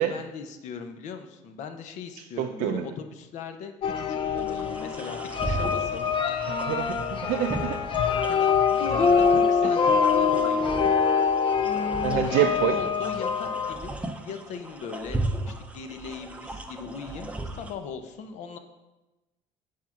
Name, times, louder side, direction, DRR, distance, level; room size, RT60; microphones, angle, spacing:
voice 1, 0.1-6.1 8.3-10.7 12.2-12.4 12.7-13.9 14.2-18.6, left 6 dB, 65° left, 7 dB, 0.9 m, -39 dB
voice 2, 2.4-2.8 6.5-7.8 12.0-12.8, right 11 dB, 80° right, 5 dB, 0.5 m, -26 dB
sound 1, 3.8-13.8, left 6 dB, 40° left, 0.5 m, -24 dB
sound 2, 4.4-17.7, right 2 dB, 10° right, 0.6 m, -37 dB
8.5 x 4.6 x 5.8 m, 1.1 s
cardioid pair, 135°, 13 cm